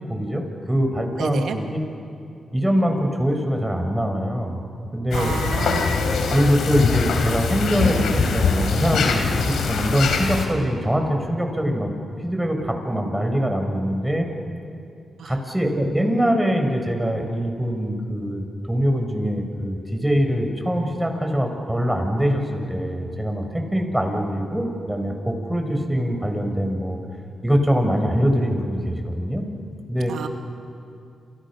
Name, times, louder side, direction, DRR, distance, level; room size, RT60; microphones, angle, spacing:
voice 1, 0.1-1.8 2.5-4.6 4.9-5.3 6.3-11.9 12.2-14.3 15.2-27.0 27.4-29.5 29.9-30.1, equal, 10° right, 3 dB, 6.4 m, -23 dB
voice 2, 1.2-1.6 5.1-5.9 15.2-15.3 30.1-30.3, right 6 dB, 80° right, 5 dB, 2.3 m, -29 dB
sound 1, 5.1-10.5, left 5 dB, 80° left, 3.6 m, -22 dB
29.0 x 28.5 x 6.4 m, 2.5 s
supercardioid pair, 45°, 0 cm